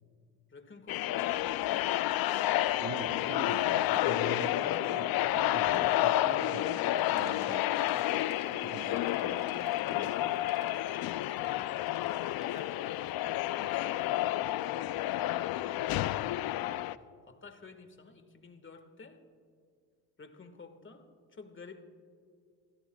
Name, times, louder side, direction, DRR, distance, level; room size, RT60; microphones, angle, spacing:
voice 1, 0.5-2.2 11.4-11.8 12.1-16.7 17.2-19.2 20.2-21.8, left 4 dB, 25° left, 8 dB, 1.7 m, -52 dB
sound 1, 0.9-16.9, left 14 dB, 55° left, 0.5 m, -30 dB
voice 2, 2.8-8.1 8.5-10.5, right 7 dB, 35° right, 9 dB, 0.7 m, -45 dB
Bicycle, 7.0-13.1, right 6 dB, 50° right, 3.5 m, -62 dB
29.5 x 15.5 x 2.3 m, 2.3 s
supercardioid pair, 70°, 43 cm